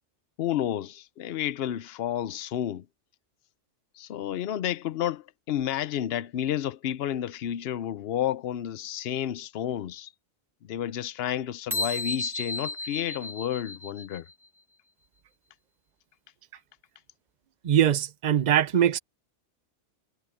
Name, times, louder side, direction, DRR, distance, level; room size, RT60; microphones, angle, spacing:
voice 1, 0.4-2.9 4.0-10.1 10.6-14.2, left 11 dB, 60° left, 0.8 m, -31 dB
sound 1, 11.7-14.3, left 2 dB, ahead, 1.8 m, -33 dB
voice 2, 17.6-19.0, right 10 dB, 45° right, 0.7 m, -22 dB
omnidirectional pair, 1.2 m